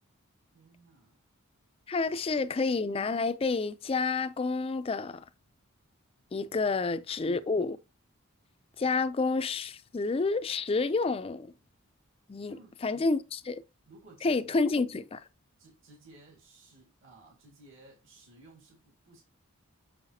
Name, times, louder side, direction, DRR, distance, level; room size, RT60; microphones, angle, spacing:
voice 1, 0.5-1.2 2.0-2.5 6.5-6.7 12.4-13.1 13.9-14.6 15.6-19.2, right 2 dB, 60° right, 1.9 m, -57 dB
voice 2, 1.9-5.2 6.3-7.8 8.8-11.5 12.3-12.6 12.8-13.6 14.2-15.2, left 3 dB, 25° left, 0.4 m, -29 dB
6.4 x 5.7 x 2.8 m
head